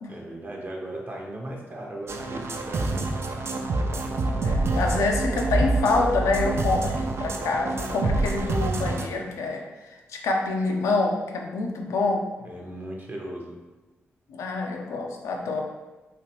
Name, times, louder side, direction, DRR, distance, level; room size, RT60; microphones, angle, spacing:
voice 1, 0.1-3.2 12.4-13.6, right 1 dB, 35° right, -1 dB, 0.7 m, -37 dB
sound 1, 2.1-9.1, right 2 dB, 55° right, 0.3 m, -26 dB
voice 2, 4.4-9.6 10.1-12.3 14.3-15.6, left 3 dB, 80° left, 1 dB, 0.4 m, -26 dB
3.0 x 2.4 x 2.8 m, 1.1 s
supercardioid pair, 45°, 5 cm